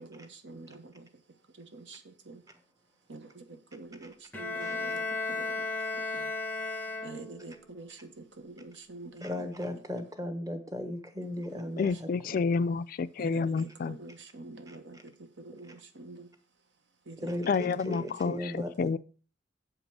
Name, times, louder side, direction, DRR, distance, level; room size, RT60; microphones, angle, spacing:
voice 1, 0.0-2.5 3.1-6.3 7.0-9.5 11.4-12.4 13.2-16.3 17.0-18.6, right 2 dB, 65° right, 1.1 m, -47 dB
Bowed string instrument, 4.3-7.5, left 3 dB, 10° left, 0.8 m, -34 dB
voice 2, 9.2-12.1 17.2-19.0, left 1 dB, 20° right, 1.2 m, -36 dB
voice 3, 11.8-14.0 17.5-19.0, left 5 dB, 45° left, 0.3 m, -29 dB
7.6 x 5.2 x 6.1 m
head